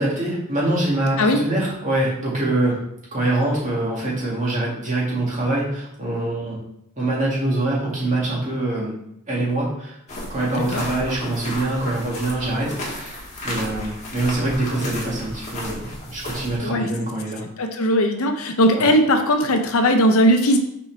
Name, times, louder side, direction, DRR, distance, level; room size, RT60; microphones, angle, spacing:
voice 1, 0.0-2.8 3.1-6.6 7.0-8.9 9.3-10.0 10.3-17.4 18.8-18.9, right 2 dB, 35° right, -5 dB, 2.1 m, -24 dB
sound 1, 10.1-16.6, left 1 dB, 30° left, 1.6 m, -34 dB
voice 2, 17.6-20.6, equal, 70° left, 5 dB, 0.7 m, -18 dB
6.1 x 4.7 x 3.3 m, 0.75 s
head